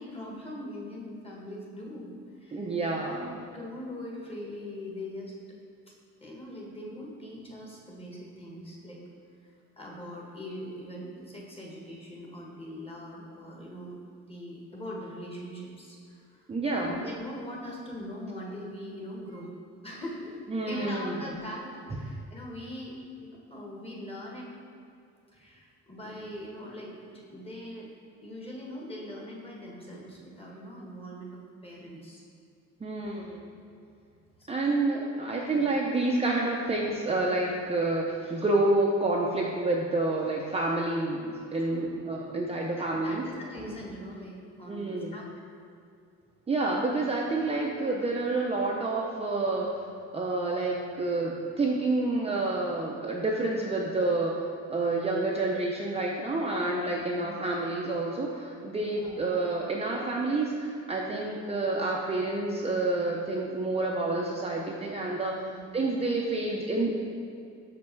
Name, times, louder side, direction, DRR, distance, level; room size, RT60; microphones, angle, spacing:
voice 1, 0.0-2.7 3.1-5.4 6.2-9.0 9.4-9.5 9.8-13.9 14.3-19.5 19.8-24.5 25.3-27.9 28.2-32.2 34.4-34.8 35.1-35.6 41.6-41.9 42.8-45.3 56.9-57.0 58.9-59.2 65.4-65.6, left 1 dB, 20° left, -3 dB, 1.4 m, -41 dB
voice 2, 2.5-3.3 16.5-16.9 20.5-21.3 32.8-33.5 34.5-43.2 44.7-45.1 46.5-49.8 50.1-65.3 65.7-66.9, right 2 dB, 20° right, -2 dB, 0.5 m, -29 dB
5.9 x 5.4 x 4.5 m, 2.4 s
cardioid pair, 125°, 30 cm